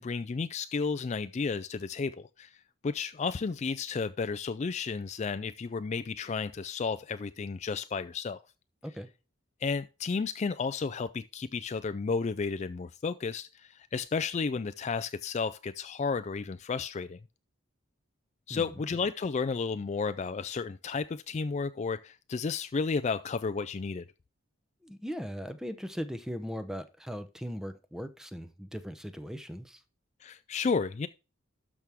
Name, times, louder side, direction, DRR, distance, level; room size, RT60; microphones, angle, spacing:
voice 1, 0.0-2.5 2.8-8.4 9.6-17.2 18.5-24.0 30.2-31.1, left 4 dB, 35° left, 0.3 m, -32 dB
voice 2, 24.8-29.8, equal, 5° right, 0.8 m, -39 dB
12.5 x 6.1 x 3.5 m
head